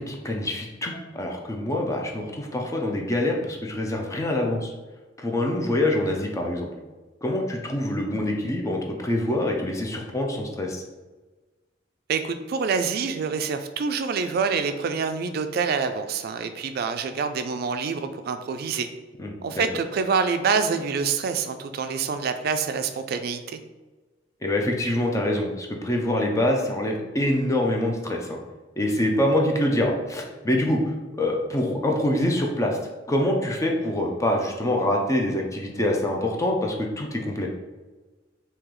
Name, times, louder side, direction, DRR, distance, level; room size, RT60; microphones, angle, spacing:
voice 1, 0.0-4.7 5.2-6.7 7.2-10.8 19.2-19.6 24.4-28.4 28.8-30.8 31.2-32.8 33.1-37.5, left 1 dB, 15° left, 1 dB, 0.4 m, -25 dB
voice 2, 12.1-18.9 19.4-23.6, right 5 dB, 55° right, 9 dB, 0.3 m, -26 dB
3.7 x 2.8 x 3.0 m, 1.2 s
head